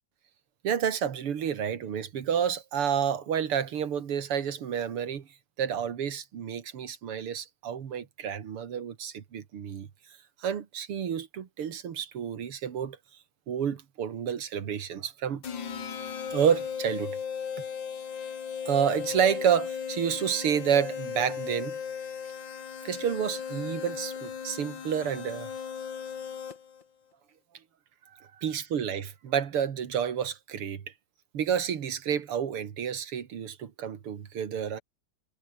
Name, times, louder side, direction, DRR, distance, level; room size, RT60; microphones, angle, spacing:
voice 1, 0.6-5.3 5.6-9.9 10.4-13.0 13.5-15.4 16.3-17.2 18.7-21.8 22.8-25.5 28.2-30.8 31.3-34.8, right 8 dB, 85° right, 2.8 m, -29 dB
sound 1, 15.4-26.8, left 7 dB, 60° left, 2.6 m, -36 dB
omnidirectional pair, 2.4 m